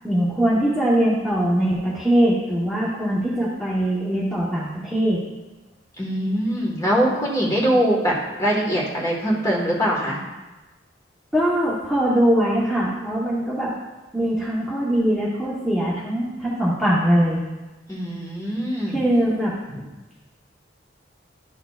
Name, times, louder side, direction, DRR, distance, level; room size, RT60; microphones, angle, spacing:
voice 1, 0.0-5.2 11.3-13.7 14.1-17.4 18.9-19.5, right 1 dB, ahead, -8 dB, 1.0 m, -21 dB
voice 2, 6.0-10.2 17.9-19.0, equal, 20° left, -3 dB, 1.4 m, -22 dB
11.5 x 6.4 x 2.4 m, 1.1 s
head